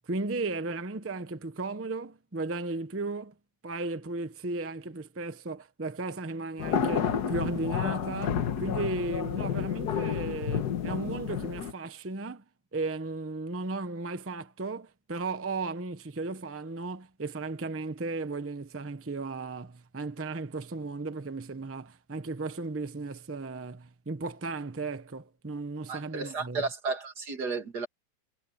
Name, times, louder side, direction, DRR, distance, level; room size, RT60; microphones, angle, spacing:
voice 1, 0.1-3.3 3.6-12.4 12.7-26.7, right 3 dB, 15° right, 0.6 m, -35 dB
sound 1, 6.6-11.7, left 8 dB, 75° left, 1.8 m, -30 dB
voice 2, 25.9-27.9, right 4 dB, 75° right, 3.1 m, -33 dB
omnidirectional pair, 1.7 m